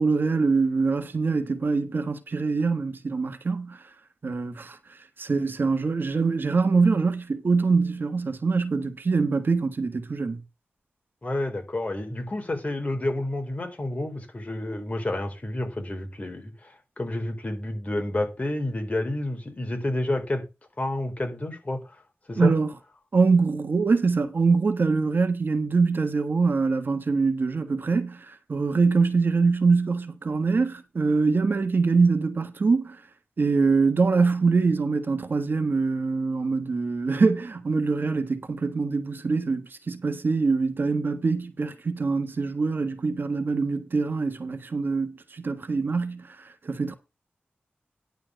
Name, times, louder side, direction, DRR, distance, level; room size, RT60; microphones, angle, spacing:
voice 1, 0.0-3.9 4.2-10.4 22.4-22.7 23.1-33.0 33.4-46.9, right 4 dB, 60° right, 1.4 m, -24 dB
voice 2, 11.2-16.7 17.0-20.4 20.8-21.8 22.3-22.5, left 1 dB, 35° left, 4.1 m, -29 dB
10.5 x 4.5 x 7.6 m
cardioid pair, 60°, 4 cm